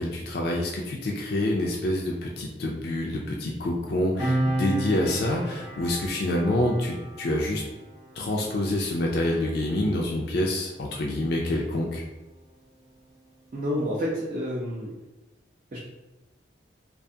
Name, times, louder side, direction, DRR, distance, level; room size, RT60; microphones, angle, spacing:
voice 1, 0.0-7.6 8.2-12.0, left 1 dB, 60° left, -2 dB, 0.3 m, -27 dB
Piano, 4.2-11.2 11.5-11.7, right 1 dB, 25° right, 0.8 m, -34 dB
voice 2, 13.5-14.9 15.7-15.8, equal, 45° right, -5 dB, 0.4 m, -29 dB
2.4 x 2.3 x 2.7 m, 1.0 s
head